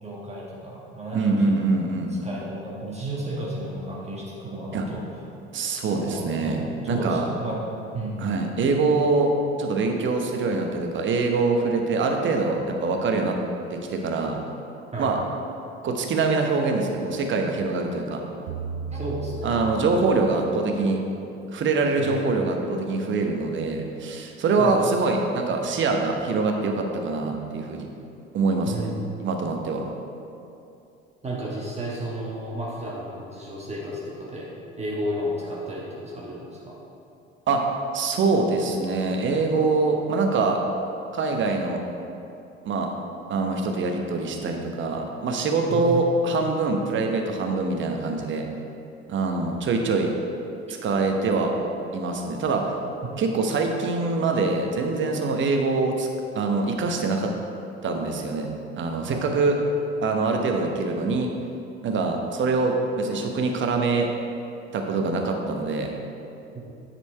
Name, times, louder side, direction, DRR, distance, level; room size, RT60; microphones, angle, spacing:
voice 1, 0.0-1.8 2.1-5.0 5.9-7.6 7.9-8.3 14.9-15.1 18.9-19.6 22.0-22.4 24.6-25.1 28.6-29.1 31.2-34.5 34.8-36.7 45.7-46.1 59.1-59.3 66.7-66.8, right 1 dB, 20° right, -5 dB, 1.4 m, -33 dB
voice 2, 1.1-2.1 4.7-4.9 5.5-6.6 6.9-7.2 8.2-9.3 9.6-13.4 13.7-14.4 15.0-15.2 15.8-18.2 19.4-21.0 21.5-27.9 28.3-28.7 29.2-29.8 37.5-37.6 37.9-40.6 41.1-41.8 42.6-42.9 43.3-48.4 49.1-50.1 50.8-51.5 51.9-52.7 53.2-56.1 56.3-57.3 57.8-58.5 58.8-59.6 60.0-61.3 61.8-64.1 64.7-65.9, right 3 dB, 35° right, 3 dB, 1.0 m, -24 dB
sound 1, 18.5-20.9, right 4 dB, 55° right, 0.5 m, -35 dB
9.6 x 4.4 x 4.5 m, 2.7 s
figure-of-eight pair, 60°, 34 cm